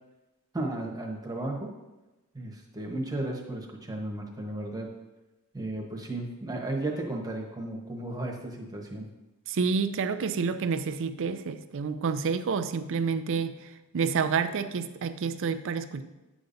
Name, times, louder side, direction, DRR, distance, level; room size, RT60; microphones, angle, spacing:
voice 1, 0.5-1.7 2.3-4.9 5.5-9.1, right 2 dB, 15° right, 0 dB, 1.0 m, -34 dB
voice 2, 9.5-16.0, right 5 dB, 60° right, 10 dB, 0.4 m, -29 dB
8.9 x 6.9 x 2.6 m, 1.1 s
head